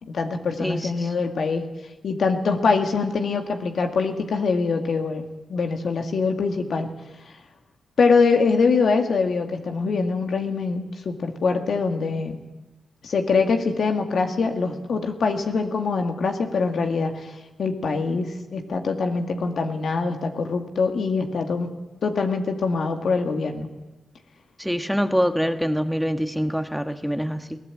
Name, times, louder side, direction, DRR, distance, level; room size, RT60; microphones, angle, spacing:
voice 1, 0.0-1.7 2.0-5.2 5.5-6.9 8.0-12.4 13.0-17.3 17.6-21.8 22.0-23.7, left 4 dB, 70° left, 4 dB, 2.1 m, -23 dB
voice 2, 0.6-0.9 24.6-27.6, equal, ahead, 8 dB, 1.5 m, -25 dB
21.5 x 16.0 x 8.6 m, 1.1 s
cardioid pair, 50°, 0 cm